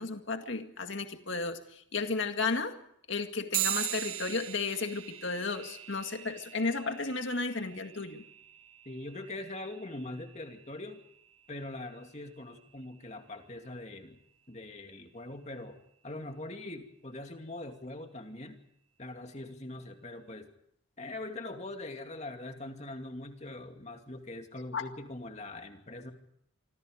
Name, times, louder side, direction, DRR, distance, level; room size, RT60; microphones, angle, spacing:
voice 1, 0.0-2.7 3.1-8.2 24.7-24.9, left 4 dB, 60° left, 6 dB, 2.1 m, -33 dB
sound 1, 3.5-13.4, right 12 dB, 90° right, 1.8 m, -41 dB
voice 2, 8.8-11.0 11.5-14.2 14.5-15.8 16.0-18.6 19.0-20.5 21.0-26.1, left 2 dB, 30° left, 5 dB, 2.5 m, -42 dB
27.0 x 25.5 x 5.1 m, 0.70 s
head